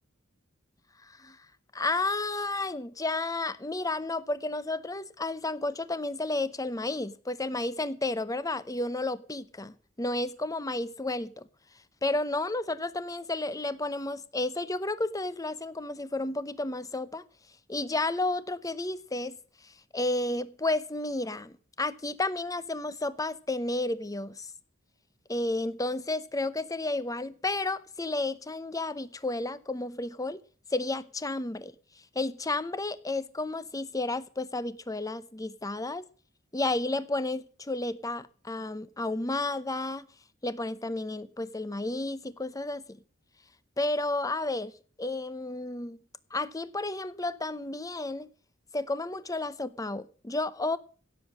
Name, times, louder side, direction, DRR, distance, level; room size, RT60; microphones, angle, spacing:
voice 1, 1.0-1.4 1.7-11.5 12.0-17.2 17.7-19.4 19.6-24.5 25.3-30.4 30.7-31.7 32.1-36.1 36.5-40.1 40.4-43.0 43.8-44.7 45.0-46.0 46.3-48.3 48.7-50.8, left 2 dB, 15° left, 0.8 m, -32 dB
16.5 x 7.4 x 6.3 m
head